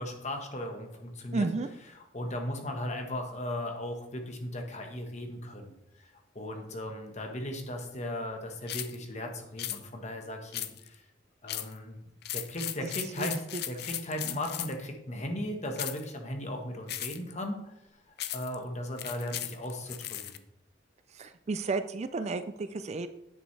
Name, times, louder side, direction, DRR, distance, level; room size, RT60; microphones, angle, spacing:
voice 1, 0.0-1.5 1.9-5.7 6.0-11.0 11.4-12.0 12.3-13.4 13.7-17.7 18.3-20.4, left 1 dB, 35° left, 3 dB, 1.3 m, -37 dB
voice 2, 1.3-1.7 12.8-12.9 13.2-13.3 14.2-14.4 21.1-23.1, right 3 dB, 35° right, 11 dB, 0.4 m, -32 dB
sound 1, 8.7-9.0 9.6-9.8 10.5-11.0 11.5-11.8 12.2-14.8 15.8-16.1 16.9-17.3 18.2-18.6 19.0-20.4, left 12 dB, 55° left, 0.5 m, -37 dB
9.3 x 7.0 x 3.3 m, 0.85 s
head